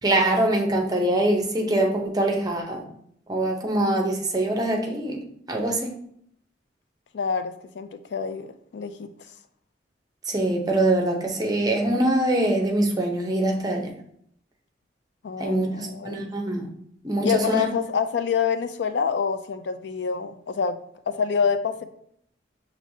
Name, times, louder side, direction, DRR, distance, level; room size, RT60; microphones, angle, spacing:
voice 1, 0.0-2.8 3.3-5.2 5.5-5.9 10.3-13.9 15.4-16.7 17.0-17.7, right 1 dB, 20° right, 2 dB, 0.7 m, -23 dB
voice 2, 7.1-9.1 15.2-16.3 17.2-20.8 21.1-21.8, left 6 dB, 65° left, 10 dB, 0.4 m, -27 dB
6.2 x 3.1 x 2.7 m, 0.68 s
head